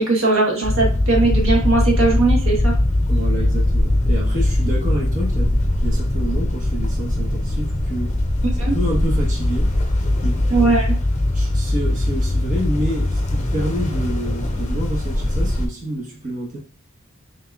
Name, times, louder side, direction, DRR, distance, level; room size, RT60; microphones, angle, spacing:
voice 1, 0.0-2.7 8.6-8.8 10.5-10.9, right 3 dB, 70° right, 1.1 m, -19 dB
sound 1, 0.6-15.7, left 1 dB, 35° left, 0.7 m, -20 dB
voice 2, 3.1-8.1 8.6-9.7 10.2-10.4 11.3-16.6, right 1 dB, 40° right, 1.0 m, -28 dB
5.5 x 2.8 x 2.3 m
head